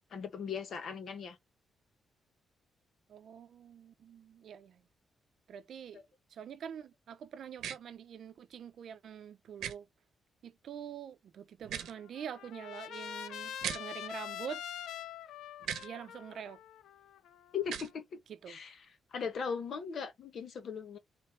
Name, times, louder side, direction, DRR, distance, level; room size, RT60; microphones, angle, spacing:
voice 1, 0.1-1.4 17.5-18.2 18.5-18.8 19.1-21.0, left 6 dB, 60° left, 1.2 m, -38 dB
voice 2, 3.1-4.8 5.5-6.0 6.3-9.9 10.4-14.6 15.8-16.6 18.3-18.6, right 8 dB, 65° right, 0.6 m, -45 dB
sound 1, 7.6-7.8 9.6-9.7 11.6-11.9 13.6-13.8 15.6-15.9 17.6-17.9, right 9 dB, 90° right, 0.8 m, -38 dB
Trumpet, 11.7-17.9, left 10 dB, 90° left, 0.4 m, -45 dB
3.4 x 3.2 x 4.4 m
cardioid pair, 120°, 0 cm